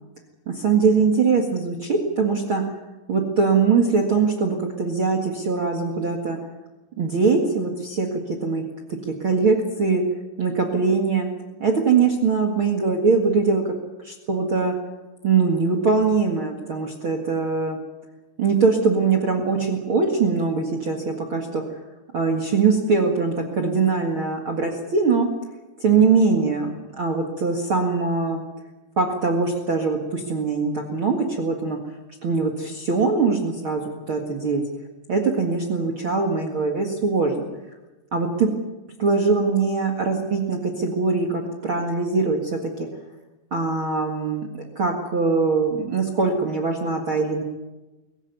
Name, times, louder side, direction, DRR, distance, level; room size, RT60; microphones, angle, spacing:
voice 1, 0.5-2.8 3.1-6.4 7.0-10.0 10.4-11.3 11.6-13.7 14.0-14.7 15.2-17.8 18.4-21.8 22.1-25.3 25.8-28.4 29.0-31.8 32.2-34.6 35.1-37.4 38.1-38.5 39.0-42.9 43.5-44.4 44.8-47.4, right 4 dB, 40° right, 4 dB, 2.2 m, -22 dB
23.5 x 15.5 x 9.4 m, 1.1 s
omnidirectional pair, 4.3 m